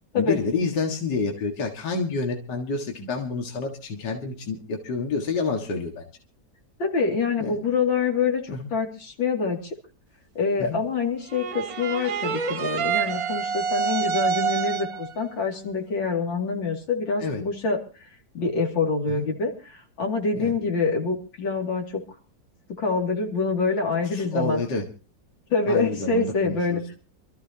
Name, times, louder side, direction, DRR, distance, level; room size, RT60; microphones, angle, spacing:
voice 1, 0.2-6.0 7.4-7.6 8.5-8.7 10.6-10.8 17.2-17.4 19.1-19.3 20.4-20.5 24.1-24.8 25.7-27.0, left 4 dB, 60° left, 1 dB, 2.4 m, -28 dB
voice 2, 6.8-8.4 8.7-9.7 10.3-18.1 18.3-22.0 22.8-24.6 25.5-26.8, left 4 dB, 80° left, 1 dB, 3.3 m, -26 dB
sound 1, 11.3-15.1, right 7 dB, 55° right, 1.2 m, -27 dB
27.0 x 14.0 x 2.9 m, 0.34 s
omnidirectional pair, 2.1 m